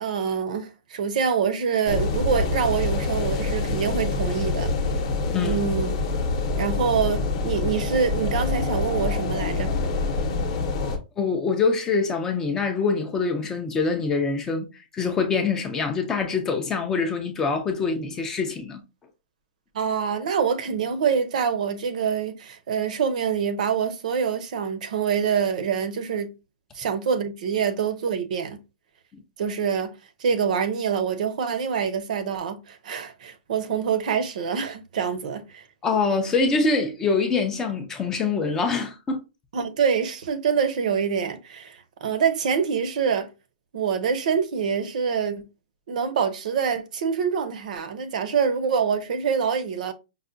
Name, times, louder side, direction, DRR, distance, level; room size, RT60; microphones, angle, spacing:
voice 1, 0.0-4.7 5.4-6.0 6.6-9.7 19.7-26.3 26.7-28.6 29.4-35.7 39.5-43.3 43.7-45.4 45.9-49.9, right 6 dB, 50° right, 0.6 m, -25 dB
sound 1, 1.9-11.0, left 3 dB, 35° left, 0.7 m, -26 dB
voice 2, 11.2-18.8 35.8-39.2, left 4 dB, 10° left, 0.3 m, -24 dB
5.4 x 2.1 x 2.5 m
hypercardioid pair, 175°, 5 cm